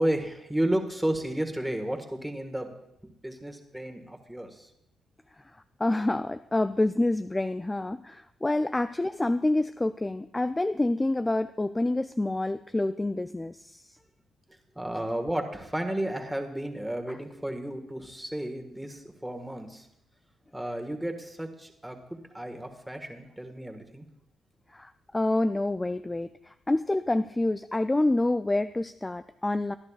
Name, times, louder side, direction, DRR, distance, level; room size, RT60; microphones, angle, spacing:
voice 1, 0.0-2.7 3.0-4.7 14.7-19.9 20.5-24.0, right 1 dB, 5° right, 4 dB, 1.6 m, -32 dB
voice 2, 5.8-14.0 17.1-17.2 24.7-29.8, left 2 dB, 15° left, 11 dB, 0.3 m, -27 dB
24.5 x 10.5 x 2.4 m, 0.80 s
cardioid pair, 90°, 0 cm